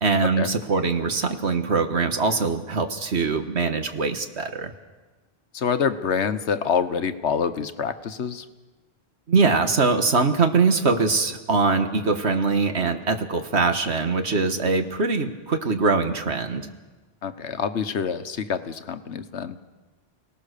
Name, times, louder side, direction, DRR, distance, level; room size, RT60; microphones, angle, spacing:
voice 1, 0.0-4.7 9.3-16.7, right 4 dB, 75° right, 7 dB, 1.8 m, -22 dB
voice 2, 5.5-8.4 17.2-19.8, left 6 dB, 85° left, 11 dB, 1.3 m, -26 dB
29.0 x 18.0 x 6.7 m, 1.3 s
omnidirectional pair, 1.1 m